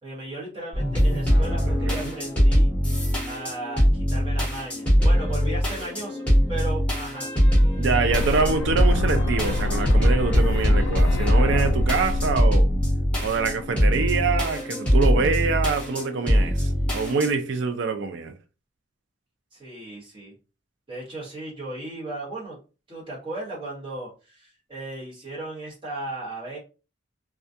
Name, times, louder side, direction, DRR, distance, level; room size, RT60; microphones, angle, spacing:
voice 1, 0.0-2.7 3.2-7.3 19.5-20.3 20.9-22.6 22.9-26.6, right 2 dB, 25° right, 1.1 m, -36 dB
sound 1, 0.7-17.3, equal, 5° left, 1.0 m, -22 dB
voice 2, 7.8-12.7 13.2-18.3, right 4 dB, 60° right, 0.4 m, -25 dB
sound 2, 8.1-14.1, left 2 dB, 75° left, 0.3 m, -27 dB
2.3 x 2.2 x 2.6 m
head